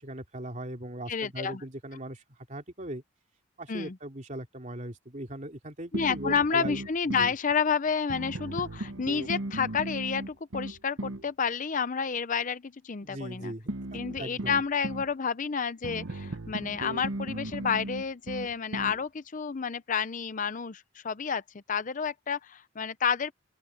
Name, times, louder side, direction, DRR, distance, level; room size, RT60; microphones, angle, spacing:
voice 1, 0.0-3.0 3.6-6.8 7.1-7.3 13.0-14.6, right 1 dB, 40° right, 2.9 m, -39 dB
voice 2, 1.1-1.6 3.7-4.0 5.9-13.5 13.9-21.4 21.7-23.3, left 6 dB, 40° left, 0.6 m, -30 dB
sound 1, 5.9-7.4 8.1-11.3 13.7-15.1 15.8-19.0, right 1 dB, 85° right, 1.2 m, -37 dB
open air
head